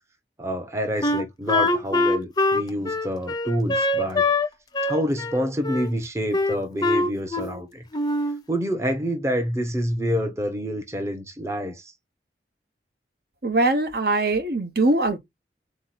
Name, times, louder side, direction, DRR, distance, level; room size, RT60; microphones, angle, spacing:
voice 1, 0.4-4.2 4.8-7.8 8.5-11.9, equal, 15° right, 0.8 m, -27 dB
Wind instrument woodwind instrument, 1.0-4.5 4.7-5.9 6.3-7.6 7.9-8.4, left 2 dB, 25° left, 0.6 m, -23 dB
voice 2, 13.4-15.2, right 2 dB, 60° right, 1.1 m, -22 dB
4.0 x 3.1 x 4.1 m
head